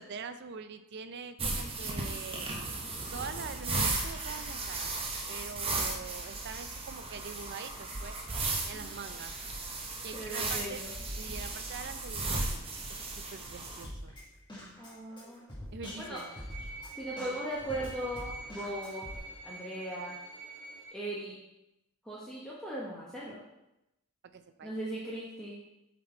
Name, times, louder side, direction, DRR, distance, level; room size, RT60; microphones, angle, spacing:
voice 1, 0.0-2.5 3.1-5.0 5.3-8.2 8.7-9.3 10.0-10.8 11.2-12.6 12.9-14.1 15.7-16.4 24.2-24.7, right 5 dB, 50° right, 10 dB, 0.5 m, -44 dB
sound 1, 1.4-13.8, right 3 dB, 25° right, 0.8 m, -36 dB
voice 2, 10.1-10.9 14.8-15.5 16.0-16.2 17.0-19.1 19.4-20.2 20.9-21.4 22.0-23.4 24.6-25.6, right 1 dB, 5° left, -7 dB, 0.9 m, -38 dB
Drum kit, 13.8-19.2, equal, 20° left, 1.8 m, -45 dB
sound 2, 15.8-20.9, right 3 dB, 50° left, 1.9 m, -46 dB
7.5 x 4.1 x 4.3 m, 0.91 s
head